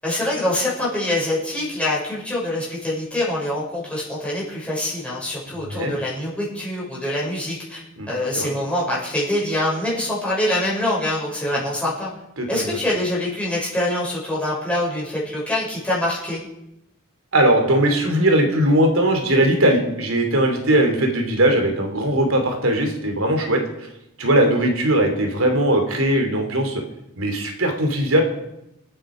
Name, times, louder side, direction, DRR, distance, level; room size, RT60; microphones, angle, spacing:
voice 1, 0.0-12.1 12.5-16.4, left 1 dB, 5° left, -6 dB, 6.4 m, -25 dB
voice 2, 5.6-5.9 8.0-8.1 8.3-8.5 11.5-11.6 12.4-12.8 17.3-23.9 24.2-26.8 27.2-28.2, right 1 dB, 80° right, 4 dB, 3.0 m, -19 dB
27.0 x 9.0 x 5.0 m, 0.87 s
head